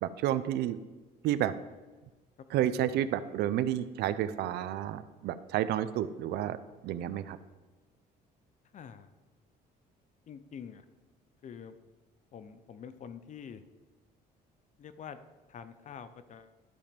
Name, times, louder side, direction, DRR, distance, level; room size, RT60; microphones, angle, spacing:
voice 1, 0.0-0.8 1.2-1.5 2.5-6.6 6.8-7.4, right 11 dB, 75° right, 14 dB, 0.5 m, -30 dB
voice 2, 8.7-9.1 10.3-10.8 11.4-11.8 12.3-13.6 14.8-15.2 15.5-16.5, left 7 dB, 45° left, 12 dB, 0.7 m, -46 dB
11.5 x 5.1 x 5.2 m, 1.2 s
cardioid pair, 110°, 17 cm